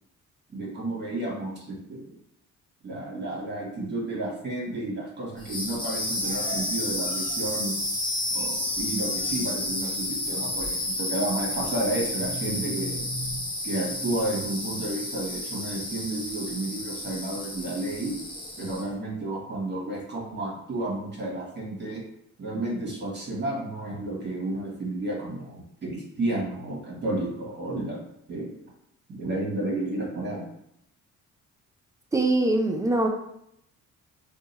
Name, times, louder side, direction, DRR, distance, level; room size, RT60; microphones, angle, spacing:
voice 1, 0.5-2.1 2.8-7.7 8.3-13.1 13.6-18.1 18.6-22.0 22.4-28.5 29.1-30.4, right 2 dB, 35° right, -2 dB, 1.3 m, -31 dB
sound 1, 5.4-18.9, left 1 dB, 15° left, 0.9 m, -31 dB
voice 2, 32.1-33.1, right 2 dB, 10° right, 3 dB, 0.5 m, -22 dB
2.7 x 2.3 x 4.1 m, 0.78 s
cardioid pair, 90°, 30 cm